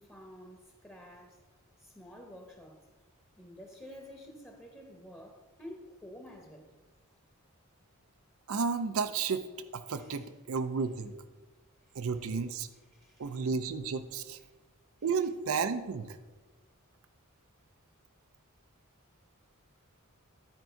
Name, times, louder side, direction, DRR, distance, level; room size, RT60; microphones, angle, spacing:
voice 1, 0.0-1.4 1.8-2.9 3.4-6.7 9.9-10.3 11.9-12.1 12.9-13.5, left 1 dB, 10° left, 2 dB, 0.9 m, -50 dB
voice 2, 8.5-9.4 9.7-11.1 11.9-12.7 13.2-14.4 15.0-16.2, right 5 dB, 70° right, 11 dB, 0.5 m, -32 dB
12.5 x 4.6 x 4.4 m, 1.2 s
head